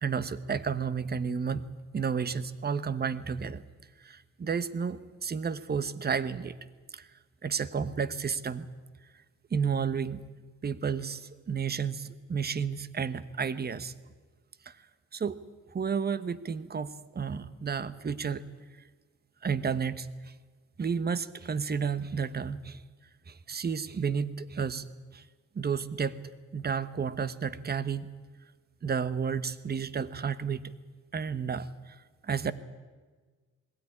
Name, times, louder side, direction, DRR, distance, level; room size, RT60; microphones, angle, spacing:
voice 1, 0.0-1.7 1.9-3.6 4.0-6.6 6.9-7.1 7.4-8.7 9.5-10.3 10.6-13.9 14.6-14.8 15.1-15.4 15.7-18.4 19.4-20.3 20.8-22.8 23.3-24.9 25.1-25.2 25.5-26.2 26.5-28.1 28.8-30.6 31.1-32.0 32.2-32.5, right 6 dB, 30° right, 15 dB, 1.1 m, -32 dB
21.0 x 16.5 x 9.9 m, 1.4 s
cardioid pair, 90°, 30 cm